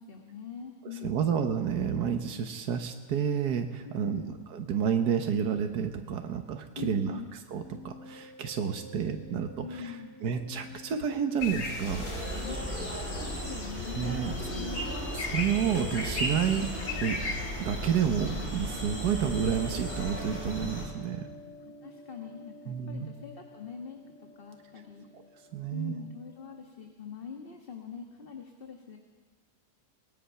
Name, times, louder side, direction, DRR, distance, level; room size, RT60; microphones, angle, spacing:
voice 1, 0.0-1.3 3.8-4.4 6.7-7.3 9.6-10.2 12.3-14.9 21.6-25.1 25.7-29.0, left 6 dB, 35° left, 2 dB, 1.7 m, -43 dB
voice 2, 1.0-4.2 4.5-7.2 7.5-9.9 10.2-12.4 14.0-14.3 15.2-17.2 17.6-21.2 22.7-23.1 25.5-25.9, right 8 dB, 85° right, 5 dB, 1.7 m, -30 dB
sound 1, 7.1-26.6, equal, 10° left, 1.7 m, -49 dB
sound 2, 11.4-18.5, left 2 dB, 80° left, 2.6 m, -37 dB
sound 3, 11.8-20.8, equal, 5° right, 5.3 m, -36 dB
26.5 x 19.5 x 5.7 m, 1.4 s
omnidirectional pair, 1.7 m